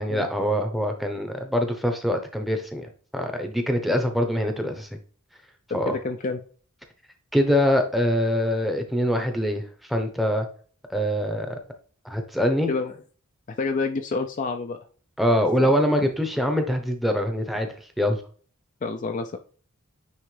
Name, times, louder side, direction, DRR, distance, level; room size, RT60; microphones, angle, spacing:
voice 1, 0.0-2.9 3.1-4.9 5.7-5.9 7.3-9.6 9.9-10.5 10.9-11.5 12.0-12.7 15.2-17.7 18.0-18.2, equal, ahead, 5 dB, 0.8 m, -24 dB
voice 2, 5.7-6.4 12.7-13.0 13.5-14.9 15.6-15.7 18.8-19.4, left 4 dB, 35° left, 6 dB, 0.4 m, -28 dB
9.3 x 3.1 x 3.2 m, 0.42 s
head